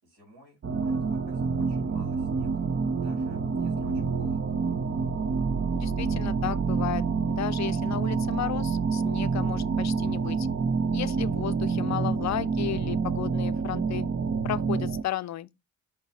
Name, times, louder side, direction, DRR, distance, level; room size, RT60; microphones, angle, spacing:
voice 1, 0.0-2.7 3.0-4.4, right 1 dB, 65° right, 4.7 m, -54 dB
sound 1, 0.6-15.0, right 5 dB, 30° right, 0.8 m, -27 dB
voice 2, 5.7-7.0 7.4-10.5 10.9-14.1 14.4-15.5, left 12 dB, 40° left, 0.6 m, -34 dB
6.5 x 5.7 x 2.9 m
hypercardioid pair, 45°, 42 cm